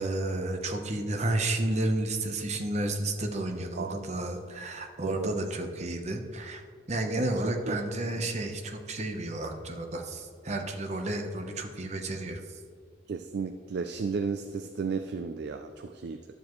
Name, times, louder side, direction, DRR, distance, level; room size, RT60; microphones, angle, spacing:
voice 1, 0.0-6.6 6.9-12.6, right 2 dB, 35° right, 4 dB, 0.8 m, -31 dB
voice 2, 3.8-4.3 5.0-5.3 7.2-7.3 7.7-7.8 13.1-16.3, right 5 dB, 55° right, 8 dB, 0.3 m, -34 dB
11.5 x 7.2 x 3.1 m, 2.1 s
head